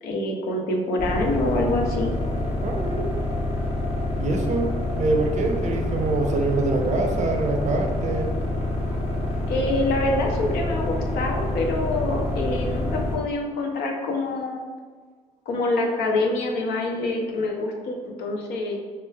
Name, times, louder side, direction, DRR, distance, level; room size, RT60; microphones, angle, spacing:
voice 1, 0.0-2.2 9.5-14.7 15.5-18.8, left 2 dB, 70° left, 1 dB, 0.6 m, -26 dB
sound 1, 1.0-13.2, left 1 dB, 35° left, 1.0 m, -27 dB
voice 2, 2.6-3.1 4.2-4.7 5.0-8.3, right 3 dB, 45° right, 3 dB, 0.5 m, -25 dB
3.3 x 3.0 x 2.3 m, 1.5 s
hypercardioid pair, 55°, 17 cm